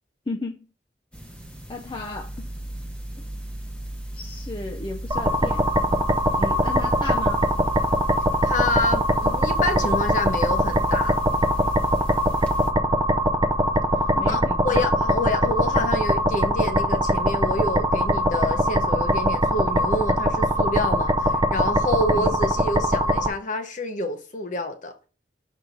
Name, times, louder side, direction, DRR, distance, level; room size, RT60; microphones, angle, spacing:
voice 1, 0.3-0.6 1.7-2.5 4.1-5.6 6.4-7.4 14.1-14.9 22.1-22.3, left 2 dB, 25° left, 0.5 m, -34 dB
sound 1, 1.1-12.7, right 1 dB, 5° left, 1.0 m, -36 dB
sound 2, 5.1-23.3, equal, 20° right, 0.6 m, -22 dB
voice 2, 8.4-11.2 14.3-24.9, left 2 dB, 45° left, 1.0 m, -28 dB
6.5 x 4.6 x 3.9 m
head